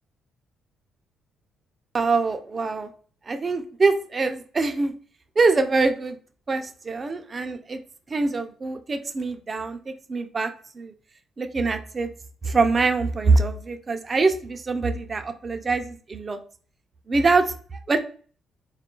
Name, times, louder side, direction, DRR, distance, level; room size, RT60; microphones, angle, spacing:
voice 1, 1.9-2.9 3.3-4.9 5.4-6.2 6.5-7.8 8.1-10.9 11.4-12.1 12.4-16.4 17.1-18.0, right 3 dB, 35° right, 7 dB, 0.5 m, -24 dB
3.8 x 2.5 x 3.7 m, 0.43 s
cardioid pair, 90°, 0 cm